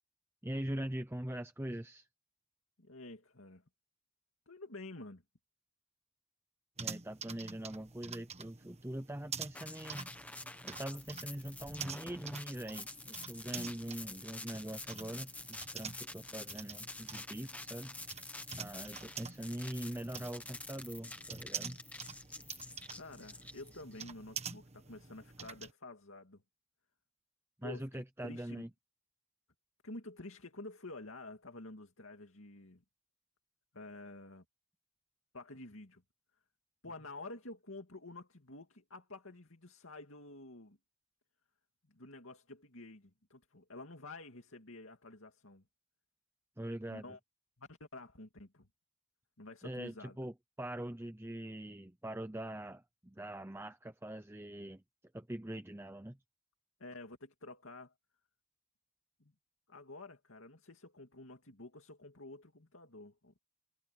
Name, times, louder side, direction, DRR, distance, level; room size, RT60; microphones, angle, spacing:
voice 1, 0.4-2.1 6.8-10.1 10.3-17.9 18.6-21.8 27.6-28.7 46.6-47.0 49.6-54.8 55.1-56.2, right 1 dB, 10° right, 0.7 m, -43 dB
voice 2, 2.8-3.6 4.5-5.2 22.9-26.4 27.6-28.6 29.8-32.8 33.7-34.4 35.3-36.0 36.8-40.8 41.9-45.6 46.9-47.2 47.6-48.7 49.4-50.2 56.8-57.9 59.2-59.3 59.7-63.4, left 2 dB, 65° left, 2.4 m, -50 dB
sound 1, 6.8-25.7, right 6 dB, 30° right, 1.4 m, -47 dB
sound 2, 9.5-24.0, left 2 dB, 5° left, 1.0 m, -48 dB
head